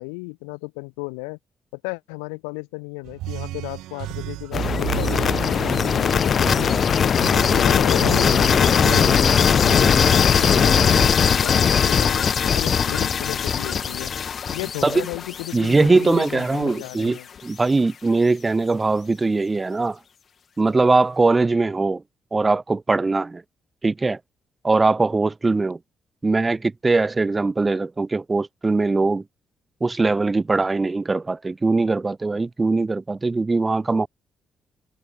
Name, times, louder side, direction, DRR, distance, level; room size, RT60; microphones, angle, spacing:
voice 1, 0.0-1.4 1.7-6.9 7.3-14.1 14.5-17.3, left 40 dB or more, 85° left, 1.1 m, -34 dB
sound 1, 3.0-11.1, right 16 dB, 75° right, 5.0 m, -32 dB
sound 2, 4.5-16.4, left 7 dB, 55° left, 0.7 m, -19 dB
voice 2, 15.5-20.0 20.6-22.0 22.3-23.4 23.8-24.2 24.6-25.8 26.2-29.2 29.8-34.1, right 3 dB, 30° right, 1.3 m, -21 dB
hypercardioid pair, 45°, 0 cm